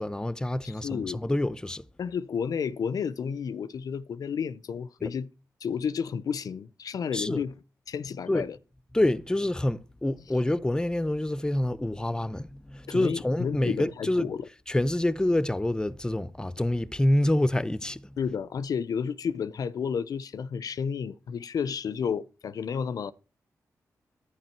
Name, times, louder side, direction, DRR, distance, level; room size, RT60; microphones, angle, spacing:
voice 1, 0.0-1.8 5.0-5.1 7.1-7.4 8.3-8.5 8.9-14.3 14.7-18.1, left 1 dB, 10° left, 0.6 m, -27 dB
voice 2, 0.6-1.2 2.0-5.3 5.6-7.5 7.9-8.6 12.9-14.5 18.2-23.1, left 6 dB, 70° left, 0.6 m, -31 dB
11.0 x 9.8 x 4.5 m
cardioid pair, 55°, 7 cm